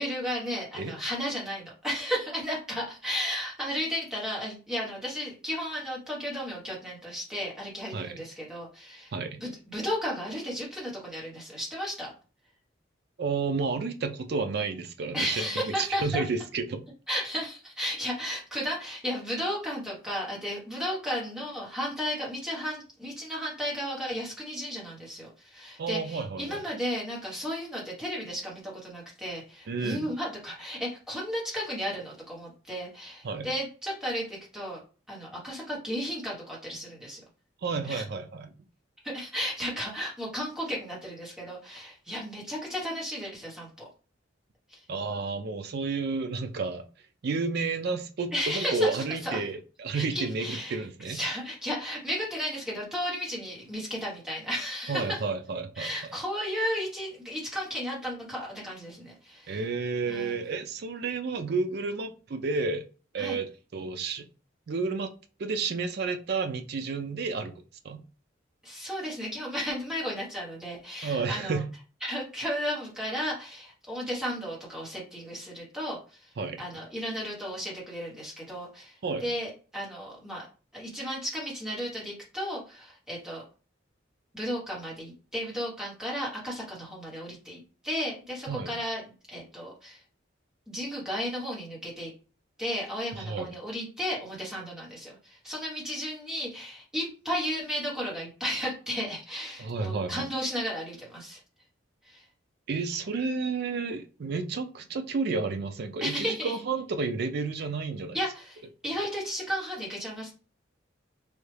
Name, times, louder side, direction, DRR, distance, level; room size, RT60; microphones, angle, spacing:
voice 1, 0.0-9.1 9.4-12.1 15.1-16.2 17.1-34.8 35.1-37.2 37.9-38.0 39.0-43.7 44.7-44.8 48.3-49.4 49.9-55.1 55.8-59.6 60.1-60.5 63.2-63.4 68.6-71.6 72.0-76.2 76.6-80.5 80.7-83.4 84.3-89.0 89.3-90.0 90.7-92.1 92.6-101.4 102.0-102.2 106.0-106.6 108.1-110.3, equal, 5° right, 1.1 m, -34 dB
voice 2, 9.1-9.4 13.2-16.9 25.8-26.6 29.7-30.1 33.2-33.5 37.6-38.5 44.9-46.8 47.2-51.2 54.9-55.9 59.5-62.8 63.1-64.2 64.7-65.1 65.4-67.5 67.8-68.0 71.0-71.7 76.4-76.6 79.0-79.3 88.5-88.7 93.2-93.5 99.6-100.3 102.7-108.2, right 4 dB, 55° right, 0.4 m, -31 dB
3.2 x 2.3 x 3.2 m
head